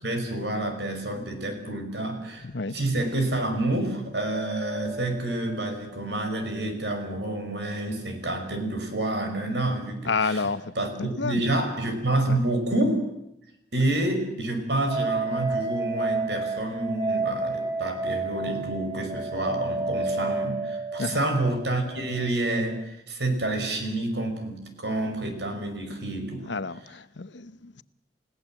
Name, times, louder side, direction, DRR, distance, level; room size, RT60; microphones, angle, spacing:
voice 1, 0.0-10.5 10.8-13.0 13.7-26.5, right 1 dB, 75° right, 5.5 m, -28 dB
voice 2, 2.4-2.8 10.0-10.7 11.0-11.4 12.3-12.4 21.0-21.2 26.5-27.8, left 4 dB, 85° left, 0.9 m, -30 dB
sound 1, 4.1-7.3 7.6-7.7 14.9-22.8, right 3 dB, 25° right, 5.2 m, -32 dB
29.5 x 17.0 x 7.6 m
head